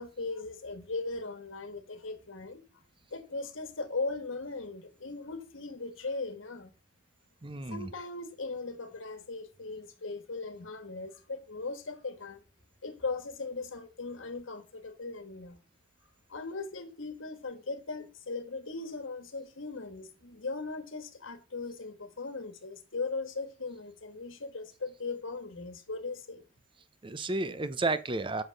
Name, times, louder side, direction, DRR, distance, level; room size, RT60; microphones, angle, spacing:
voice 1, 0.0-2.6 3.1-6.7 7.7-12.4 12.8-15.6 16.3-26.4, left 3 dB, 80° left, 1.5 m, -38 dB
voice 2, 7.4-7.9 27.0-28.4, right 2 dB, 25° right, 0.6 m, -32 dB
6.4 x 5.7 x 6.6 m
head